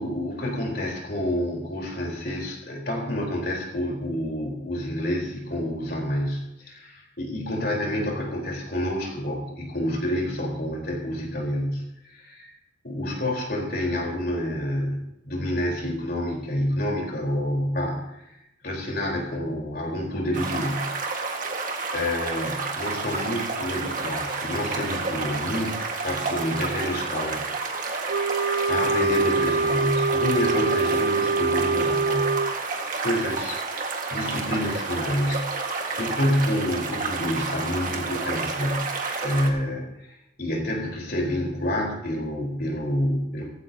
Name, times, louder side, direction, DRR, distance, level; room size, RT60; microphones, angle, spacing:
voice 1, 0.0-12.5 12.8-18.4 18.6-21.0 21.3-21.7 21.9-27.5 28.0-32.4 33.0-43.5, left 1 dB, 55° left, 0 dB, 3.9 m, -28 dB
sound 1, 20.3-39.5, right 4 dB, 45° right, 1.7 m, -30 dB
Wind instrument woodwind instrument, 28.1-32.6, right 4 dB, 85° right, 0.7 m, -24 dB
17.0 x 15.0 x 2.8 m, 0.87 s
head